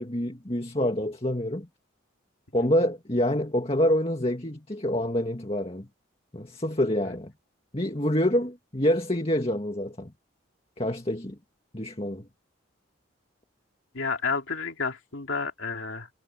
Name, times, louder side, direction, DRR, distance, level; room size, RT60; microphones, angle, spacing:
voice 1, 0.0-1.7 2.5-5.9 6.3-7.3 7.7-10.1 10.8-11.4 11.7-12.3, left 1 dB, 30° left, 2.1 m, -26 dB
voice 2, 13.9-16.1, left 4 dB, 75° left, 2.6 m, -30 dB
head